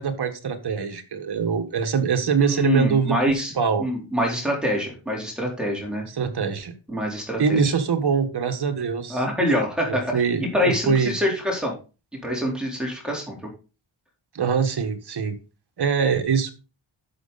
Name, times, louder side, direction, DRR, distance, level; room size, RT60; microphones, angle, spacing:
voice 1, 0.0-3.8 6.1-6.7 7.4-9.2 9.9-11.1 14.3-15.4 15.8-16.5, right 6 dB, 55° right, 6 dB, 1.6 m, -23 dB
voice 2, 2.4-3.5 3.8-6.0 6.9-7.6 9.1-11.7 12.2-13.4, equal, ahead, -2 dB, 3.9 m, -25 dB
11.0 x 6.6 x 4.1 m, 0.33 s
wide cardioid pair, 145°, 46 cm